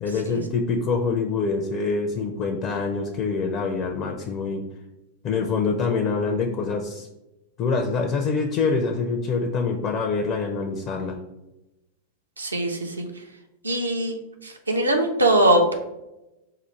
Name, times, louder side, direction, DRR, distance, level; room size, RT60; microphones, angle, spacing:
voice 1, 0.0-4.6 5.2-7.1 7.6-11.2, left 4 dB, 35° left, 2 dB, 0.5 m, -25 dB
voice 2, 12.4-13.1 13.6-14.2 14.4-15.7, right 1 dB, 80° right, 3 dB, 0.7 m, -21 dB
4.9 x 2.4 x 4.4 m, 0.96 s
figure-of-eight pair, 90°, 0 cm